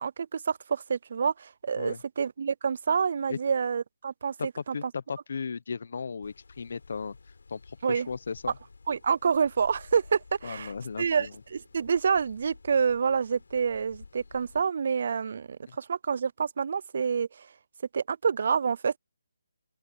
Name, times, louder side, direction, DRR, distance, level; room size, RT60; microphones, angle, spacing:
voice 1, 0.0-4.3 4.7-4.8 7.8-8.1 8.9-10.7 11.0-17.5 17.9-19.0, right 6 dB, 50° right, 0.4 m, -28 dB
voice 2, 4.4-7.2 7.5-8.5 10.4-11.3 15.7-15.8, left 5 dB, 55° left, 1.1 m, -36 dB
sound 1, 6.2-14.6, left 4 dB, 75° left, 6.2 m, -53 dB
open air
hypercardioid pair, 165°, 0 cm